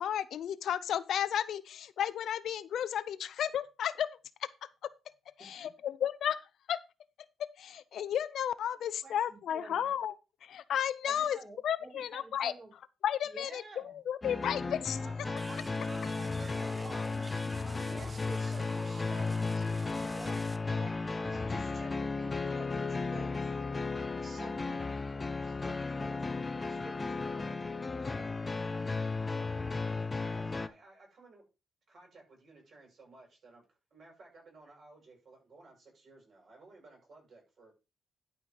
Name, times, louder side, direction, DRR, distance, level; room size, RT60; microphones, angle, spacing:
voice 1, 0.0-4.1 4.6-4.9 5.4-6.4 6.7-6.8 7.4-10.1 10.4-12.5 13.0-15.0, left 10 dB, 65° left, 0.6 m, -33 dB
voice 2, 9.0-9.9 11.0-12.7 13.3-14.0 15.0-20.9 21.2-23.8 24.2-26.4 26.7-27.2, right 3 dB, 30° right, 3.6 m, -51 dB
sound 1, 14.2-30.7, left 3 dB, 20° left, 0.7 m, -35 dB
sound 2, 15.4-20.6, right 2 dB, 15° right, 0.7 m, -50 dB
voice 3, 26.5-28.9 29.3-31.4 31.9-37.7, right 2 dB, 50° right, 7.0 m, -57 dB
11.5 x 4.6 x 5.4 m
cardioid pair, 125°, 0 cm